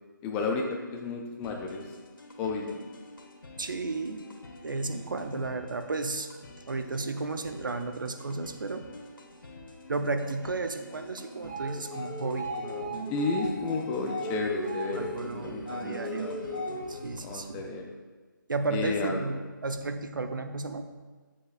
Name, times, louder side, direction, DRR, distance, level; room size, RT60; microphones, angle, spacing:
voice 1, 0.2-1.9 2.4-2.8 13.1-16.4 17.2-17.8 18.7-19.2, left 4 dB, 10° left, 2 dB, 0.4 m, -32 dB
sound 1, 1.4-17.4, left 2 dB, 75° left, 1.2 m, -49 dB
voice 2, 3.6-4.2 4.6-8.9 9.9-13.0 14.9-16.4 16.9-17.6 18.5-20.8, right 3 dB, 70° right, 7 dB, 0.7 m, -33 dB
sound 2, 11.3-17.1, equal, 20° right, 1.9 m, -36 dB
8.6 x 7.2 x 2.4 m, 1.4 s
figure-of-eight pair, 155°, 11 cm